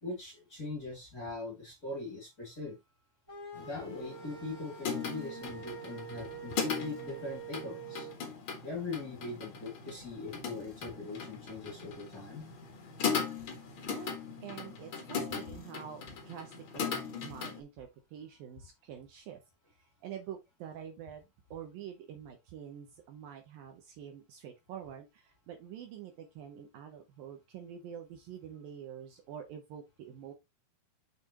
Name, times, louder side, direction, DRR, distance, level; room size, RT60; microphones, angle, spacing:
voice 1, 0.0-2.8 3.6-8.1 8.6-12.5, left 3 dB, 25° left, 2.2 m, -41 dB
sound 1, 3.3-8.1, right 6 dB, 10° left, 2.5 m, -46 dB
sound 2, 3.5-17.6, left 6 dB, 55° left, 1.4 m, -39 dB
voice 2, 13.8-19.4 20.0-30.3, right 9 dB, 70° right, 2.4 m, -47 dB
6.8 x 5.9 x 3.0 m
omnidirectional pair, 4.7 m